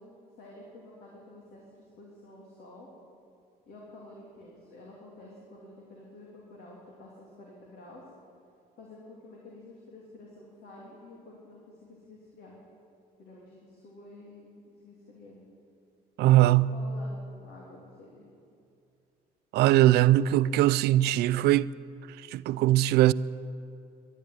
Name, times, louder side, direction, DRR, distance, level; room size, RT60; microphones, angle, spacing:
voice 1, 0.0-2.9 3.7-8.0 8.8-12.5 13.2-15.4 16.4-18.3, left 2 dB, 70° left, 3.1 m, -50 dB
voice 2, 16.2-16.7 19.5-21.7 22.3-23.1, right 14 dB, 75° right, 0.4 m, -21 dB
13.0 x 10.5 x 9.7 m
cardioid pair, 110°, 17 cm